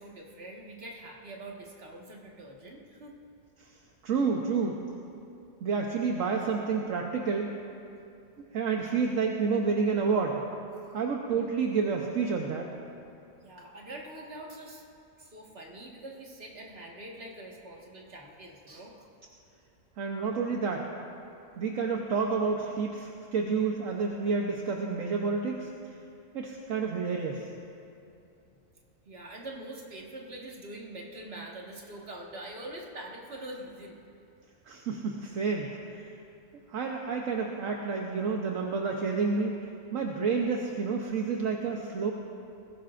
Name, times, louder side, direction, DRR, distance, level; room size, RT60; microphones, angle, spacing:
voice 1, 0.0-3.1 10.7-11.0 13.4-14.8 15.2-19.1 29.0-34.0, right 1 dB, 45° right, -2 dB, 2.0 m, -44 dB
voice 2, 4.0-4.8 5.6-7.5 8.5-10.4 10.9-12.7 20.0-20.9 21.6-25.7 26.3-27.5 34.7-36.1 36.7-39.6 39.9-42.1, right 5 dB, 70° right, 0 dB, 1.2 m, -29 dB
21.0 x 16.5 x 2.5 m, 2.7 s
omnidirectional pair, 1.4 m